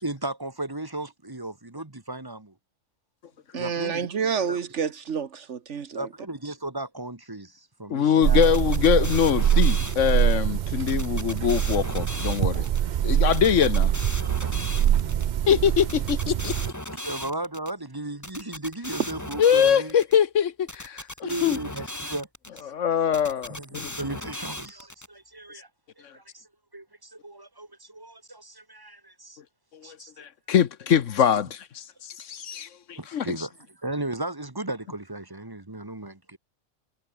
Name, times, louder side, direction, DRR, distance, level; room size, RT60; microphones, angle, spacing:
voice 1, 0.0-2.5 3.6-4.1 4.4-4.6 5.9-8.5 14.8-15.4 16.9-19.9 21.2-22.3 23.5-25.7 26.1-26.5 26.7-29.4 29.8-30.3 32.9-33.5 33.8-36.4, right 2 dB, 15° right, 1.5 m, -35 dB
voice 2, 3.5-6.1, right 6 dB, 65° right, 1.5 m, -29 dB
voice 3, 7.9-12.7 13.0-13.9 15.5-16.5 19.4-21.6 22.7-23.9 26.0-26.1 29.7-33.5, left 8 dB, 70° left, 1.3 m, -23 dB
sound 1, 8.2-16.7, right 10 dB, 80° right, 0.4 m, -24 dB
sound 2, 8.4-10.3 10.9-12.8 13.3-15.2 15.8-17.7 18.2-20.2 20.7-22.6 23.1-25.1, left 1 dB, 10° left, 3.1 m, -37 dB
omnidirectional pair, 1.4 m